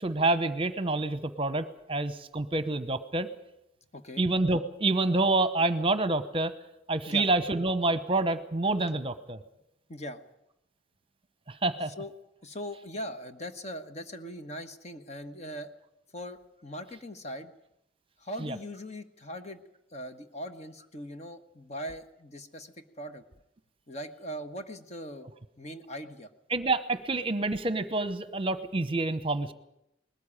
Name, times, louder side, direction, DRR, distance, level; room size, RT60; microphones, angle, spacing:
voice 1, 0.0-3.3 4.2-6.5 6.9-9.4 11.5-11.9 18.4-18.6 26.5-29.5, right 2 dB, 30° right, 12 dB, 0.9 m, -27 dB
voice 2, 3.9-4.2 7.1-7.3 9.9-10.2 12.0-12.1 12.4-15.7 16.1-17.5 18.2-19.6 19.9-23.2 23.9-25.3 25.6-26.3, equal, 40° left, 8 dB, 1.2 m, -40 dB
20.5 x 14.0 x 9.9 m, 0.83 s
head